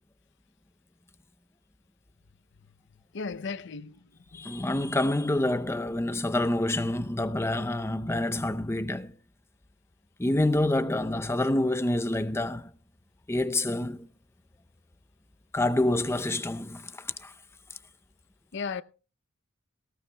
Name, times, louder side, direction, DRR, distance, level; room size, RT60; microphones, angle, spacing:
voice 1, 3.1-4.0 4.3-4.4 18.5-18.8, left 5 dB, 60° left, 0.6 m, -35 dB
voice 2, 4.3-9.1 10.2-12.7 13.3-14.1 15.5-17.3, left 1 dB, 15° left, 0.5 m, -27 dB
19.0 x 17.0 x 2.2 m
head